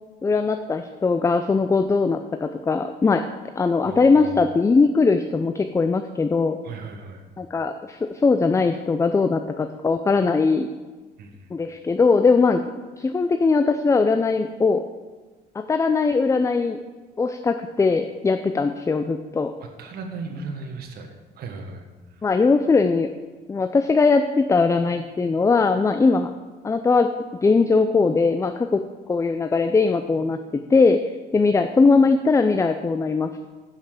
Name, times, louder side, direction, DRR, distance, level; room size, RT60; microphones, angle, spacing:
voice 1, 0.2-3.3 3.6-6.6 7.4-10.7 11.5-14.8 15.5-16.8 17.2-19.5 22.2-23.1 23.5-26.3 26.6-27.1 27.4-28.8 29.1-33.5, left 4 dB, 15° left, 8 dB, 0.5 m, -20 dB
voice 2, 3.8-4.4 6.6-7.2 11.2-11.5 19.6-22.2, right 4 dB, 65° right, 4 dB, 1.6 m, -37 dB
10.0 x 5.9 x 6.7 m, 1.3 s
cardioid pair, 110°, 17 cm